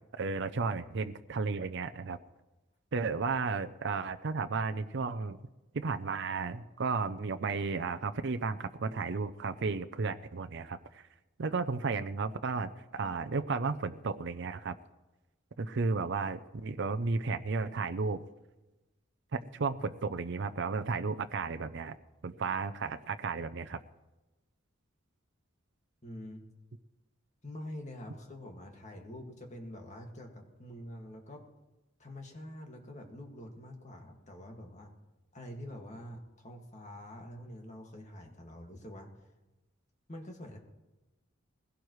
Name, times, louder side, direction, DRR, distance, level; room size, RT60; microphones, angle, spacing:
voice 1, 0.1-2.2 2.9-5.4 5.7-11.0 11.4-14.7 15.6-18.2 19.3-22.0 22.2-23.8, right 4 dB, 60° right, 8 dB, 0.6 m, -33 dB
voice 2, 26.0-26.4 27.4-31.5 32.0-34.9 35.3-39.3 40.1-40.6, left 1 dB, 35° left, 2 dB, 2.0 m, -46 dB
20.5 x 16.5 x 3.2 m, 1.1 s
head